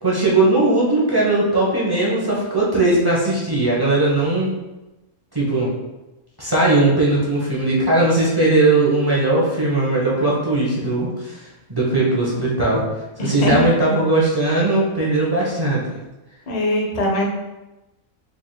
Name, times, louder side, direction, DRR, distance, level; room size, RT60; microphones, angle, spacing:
voice 1, 0.0-4.5 5.3-5.7 6.4-11.4 11.7-12.8 13.2-15.8, right 2 dB, 20° right, -6 dB, 0.8 m, -18 dB
voice 2, 13.2-13.7 16.5-17.3, left 1 dB, 40° left, -1 dB, 0.6 m, -21 dB
4.7 x 3.5 x 2.3 m, 1.0 s
omnidirectional pair, 1.5 m